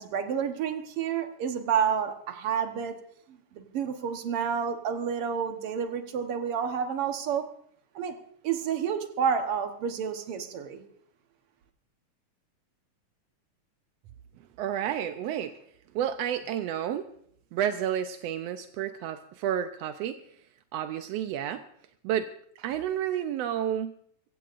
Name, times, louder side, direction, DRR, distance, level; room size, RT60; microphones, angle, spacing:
voice 1, 0.0-2.9 3.5-7.5 8.0-8.1 8.4-10.8, right 7 dB, 60° right, 6 dB, 1.8 m, -29 dB
voice 2, 14.6-15.5 15.9-17.0 17.5-20.2 20.7-21.6 22.0-22.3 22.6-23.9, right 10 dB, 80° right, 8 dB, 1.5 m, -30 dB
23.5 x 15.5 x 2.5 m, 0.66 s
omnidirectional pair, 3.5 m